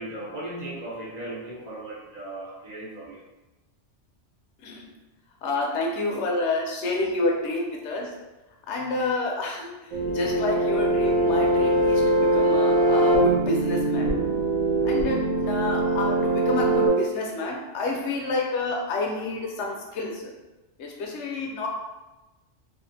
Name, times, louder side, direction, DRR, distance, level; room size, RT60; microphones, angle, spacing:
voice 1, 0.0-3.2, right 1 dB, 50° right, -4 dB, 0.5 m, -37 dB
voice 2, 5.4-8.1 8.7-9.7 10.1-12.0 12.3-14.1 14.8-20.3 20.8-21.7, left 2 dB, 80° left, 0 dB, 0.9 m, -29 dB
sound 1, 9.9-16.9, right 1 dB, 85° right, 0.9 m, -22 dB
2.5 x 2.4 x 2.6 m, 1.1 s
omnidirectional pair, 1.2 m